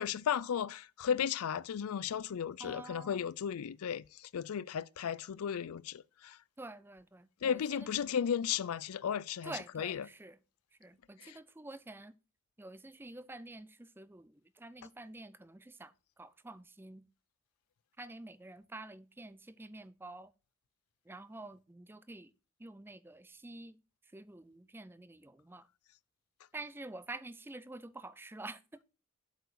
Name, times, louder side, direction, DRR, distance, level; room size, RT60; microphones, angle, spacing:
voice 1, 0.0-6.4 7.4-10.1 11.2-11.4, left 8 dB, 90° left, 0.4 m, -35 dB
voice 2, 2.6-3.3 6.6-7.9 9.4-10.4 10.8-12.1 12.6-17.0 18.0-20.3 21.1-22.3 22.6-23.8 24.1-25.7 26.5-28.6, right 2 dB, 10° right, 0.4 m, -48 dB
7.8 x 4.8 x 6.4 m
head